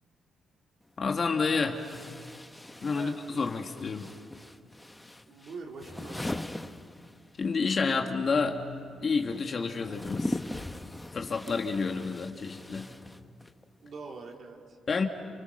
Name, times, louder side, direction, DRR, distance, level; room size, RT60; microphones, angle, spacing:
sound 1, 0.8-0.9 1.7-7.5 7.8-13.6, left 1 dB, 10° left, 1.0 m, -40 dB
voice 1, 1.0-1.8 2.8-4.1 7.4-8.6 9.0-10.4 11.1-12.9 14.9-15.1, left 4 dB, 40° left, 3 dB, 1.8 m, -29 dB
voice 2, 5.3-6.6 13.8-14.8, right 4 dB, 55° right, 0 dB, 3.9 m, -43 dB
29.0 x 29.0 x 6.6 m, 2.2 s
cardioid pair, 110°, 0 cm